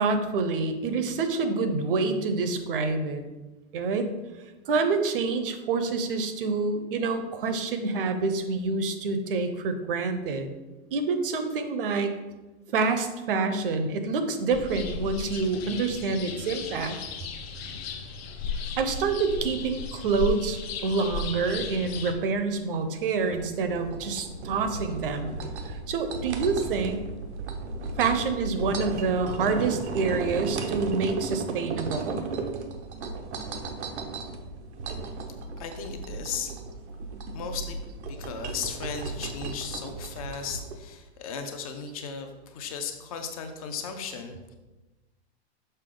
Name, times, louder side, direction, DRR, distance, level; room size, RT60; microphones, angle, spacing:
voice 1, 0.0-3.2 3.7-4.1 4.7-10.5 10.9-12.2 12.7-17.0 18.8-25.3 25.7-27.0 28.0-32.2, right 4 dB, 55° right, 8 dB, 0.8 m, -27 dB
sound 1, 14.5-22.1, left 5 dB, 65° left, 0.9 m, -35 dB
sound 2, 21.6-40.8, right 3 dB, 85° right, 1.0 m, -35 dB
voice 2, 35.6-36.6 37.3-37.8 38.1-44.5, left 6 dB, 35° left, 6 dB, 0.6 m, -36 dB
6.7 x 5.5 x 3.8 m, 1.1 s
supercardioid pair, 175°, 33 cm